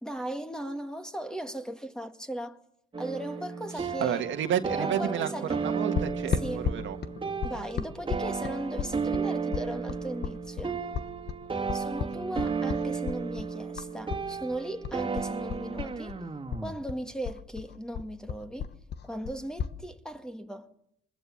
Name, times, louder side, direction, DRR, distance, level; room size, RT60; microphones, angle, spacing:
voice 1, 0.0-2.6 3.0-4.3 4.7-5.5 6.2-6.7 7.4-10.8 11.7-16.2 16.6-18.7 19.0-20.7, right 1 dB, 5° left, 1.8 m, -37 dB
sound 1, 2.9-16.7, right 5 dB, 25° right, 2.2 m, -33 dB
voice 2, 3.7-7.0, right 9 dB, 75° right, 1.6 m, -31 dB
sound 2, 6.0-14.3 14.5-16.2 16.5-19.8, left 7 dB, 60° left, 1.2 m, -34 dB
24.0 x 20.5 x 7.3 m
cardioid pair, 90°, 20 cm